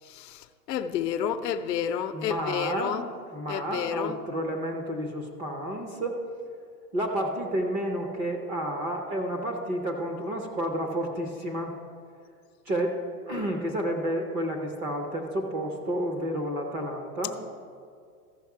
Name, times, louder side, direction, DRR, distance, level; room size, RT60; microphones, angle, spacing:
voice 1, 0.1-3.0 3.5-4.2, left 9 dB, 85° left, 0.7 m, -30 dB
voice 2, 2.1-3.0 3.3-6.2 6.9-11.7 12.7-13.0 13.3-17.4, right 1 dB, 15° right, 0.4 m, -30 dB
14.5 x 5.7 x 4.6 m
hypercardioid pair, 135°, 48 cm